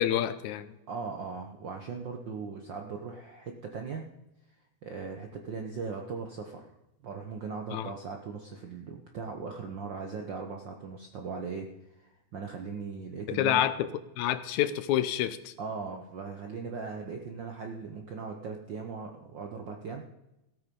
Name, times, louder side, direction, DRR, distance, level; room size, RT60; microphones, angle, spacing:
voice 1, 0.0-0.7 7.7-7.9 13.3-13.9 14.2-15.5, left 11 dB, 80° left, 14 dB, 2.0 m, -28 dB
voice 2, 0.9-4.0 4.8-6.7 7.0-13.6 15.6-20.1, right 5 dB, 70° right, 3 dB, 1.1 m, -39 dB
16.5 x 8.9 x 5.3 m, 0.92 s
omnidirectional pair, 3.4 m